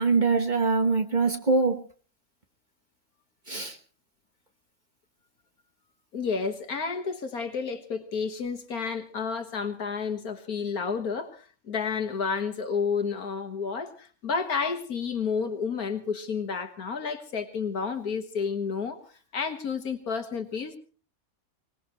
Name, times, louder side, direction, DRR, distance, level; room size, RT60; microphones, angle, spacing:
voice 1, 0.0-1.8 3.5-3.7, right 4 dB, 30° right, 6 dB, 1.3 m, -23 dB
voice 2, 6.1-19.0 19.3-20.8, left 5 dB, 70° left, 6 dB, 2.0 m, -31 dB
25.0 x 19.0 x 3.1 m, 0.39 s
omnidirectional pair, 1.6 m